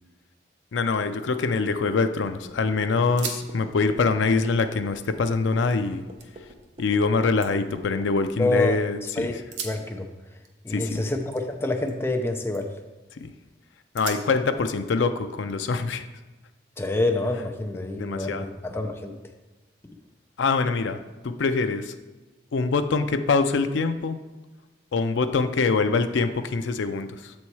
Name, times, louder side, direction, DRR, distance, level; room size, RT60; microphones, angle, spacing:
voice 1, 0.7-6.0 6.8-9.3 10.7-11.0 13.2-13.3 13.9-16.0 18.0-18.5 20.4-21.0 21.2-21.9 22.5-24.2 24.9-27.3, left 4 dB, 90° left, 9 dB, 0.4 m, -24 dB
sound 1, 2.2-8.7, right 1 dB, 30° right, 0.7 m, -45 dB
sound 2, 3.1-3.5 3.7-5.8 6.2-6.7 7.1-8.6 9.4-12.2 12.5-12.9 13.4-13.5 13.9-16.2 16.8-18.0, right 6 dB, 75° right, 0.8 m, -42 dB
voice 2, 8.4-10.1 10.6-12.7 16.8-19.1, left 2 dB, 15° left, 4 dB, 0.5 m, -27 dB
6.9 x 4.2 x 4.6 m, 1.1 s
head